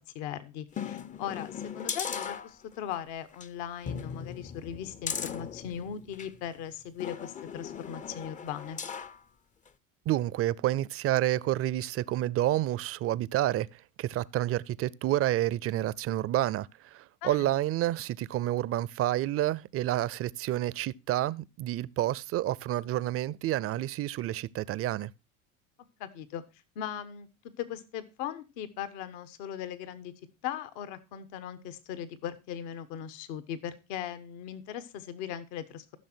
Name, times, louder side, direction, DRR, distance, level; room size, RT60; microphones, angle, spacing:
voice 1, 0.1-8.8 17.2-17.5 26.0-26.4 26.7-27.3 27.6-30.1 30.4-36.0, left 9 dB, 70° left, 1.3 m, -39 dB
sound 1, 0.7-2.9 3.3-3.5 3.8-6.4 7.0-9.2 9.7-9.8, left 7 dB, 20° left, 0.5 m, -38 dB
voice 2, 10.1-25.1, right 14 dB, 35° right, 0.5 m, -29 dB
14.0 x 6.3 x 4.4 m
supercardioid pair, 95°, 39 cm